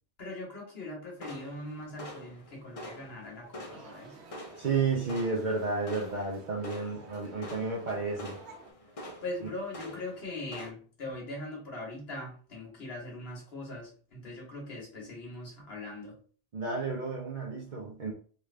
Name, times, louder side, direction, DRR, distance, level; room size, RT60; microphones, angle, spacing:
voice 1, 0.2-4.1 9.2-16.2, left 2 dB, 65° left, -2 dB, 1.5 m, -41 dB
sound 1, 1.2-10.7, equal, 40° left, 0.6 m, -47 dB
sound 2, 3.7-8.7, right 5 dB, 85° right, 1.0 m, -52 dB
voice 2, 4.6-8.4 16.5-18.1, right 4 dB, 50° right, -2 dB, 0.7 m, -32 dB
3.2 x 2.5 x 3.2 m, 0.43 s
omnidirectional pair, 1.1 m